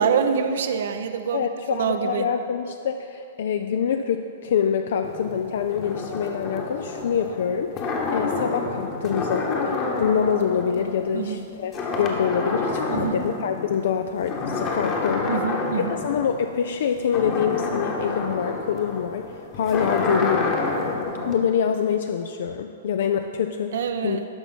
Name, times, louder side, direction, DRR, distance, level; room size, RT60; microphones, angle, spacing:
voice 1, 0.0-2.3 11.1-11.4 12.9-13.2 15.3-15.9 23.7-24.3, right 6 dB, 60° right, 8 dB, 0.6 m, -25 dB
voice 2, 1.3-15.4 15.7-20.6 21.2-24.2, left 7 dB, 60° left, 6 dB, 0.3 m, -25 dB
sound 1, 5.0-11.4 11.7-13.8 14.2-21.3, left 3 dB, 30° left, 1.2 m, -28 dB
11.5 x 5.5 x 4.2 m, 2.6 s
figure-of-eight pair, 110°, 0 cm